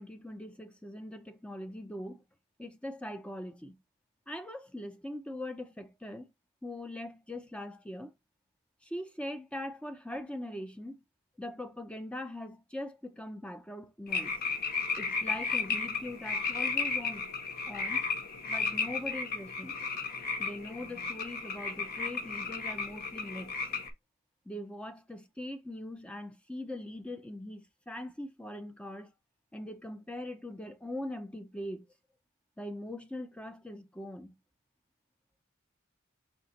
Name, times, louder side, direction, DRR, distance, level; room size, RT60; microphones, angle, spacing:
voice 1, 0.0-2.2 2.6-3.8 4.3-6.3 6.6-8.1 8.8-11.0 11.4-14.3 15.0-17.3 17.7-18.0 18.5-19.9 20.4-23.5 24.5-29.1 29.5-31.9 32.6-34.3, left 1 dB, 5° left, 0.5 m, -41 dB
sound 1, 14.1-23.9, left 4 dB, 45° left, 0.8 m, -34 dB
5.7 x 2.2 x 4.0 m
head